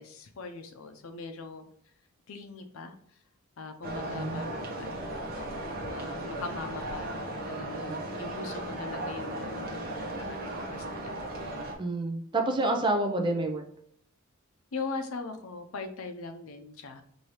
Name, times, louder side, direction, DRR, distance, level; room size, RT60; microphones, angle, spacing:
voice 1, 0.0-1.7 2.3-3.2 3.6-11.3 14.7-17.0, left 3 dB, 85° left, 7 dB, 0.5 m, -41 dB
sound 1, 3.8-11.7, right 1 dB, 45° right, 0.9 m, -36 dB
voice 2, 11.8-13.6, right 2 dB, 25° right, 3 dB, 0.4 m, -28 dB
4.7 x 2.7 x 2.9 m, 0.64 s
head